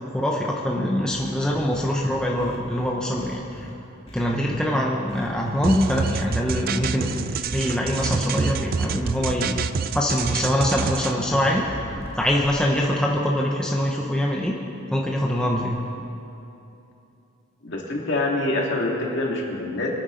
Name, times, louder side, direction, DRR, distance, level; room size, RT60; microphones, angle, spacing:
voice 1, 0.1-3.7 4.1-9.6 9.9-11.6 12.1-14.5 14.9-15.8, left 1 dB, 5° left, -2 dB, 0.8 m, -24 dB
sound 1, 1.1-3.7 4.1-4.7 5.1-5.6 6.1-6.8 7.5-8.1 9.1-9.7 10.8-12.8, equal, 30° left, 1.6 m, -40 dB
sound 2, 5.6-11.1, right 6 dB, 40° right, 0.3 m, -27 dB
voice 2, 17.6-19.9, left 2 dB, 55° left, -2 dB, 2.2 m, -25 dB
23.5 x 9.4 x 3.8 m, 2.9 s
head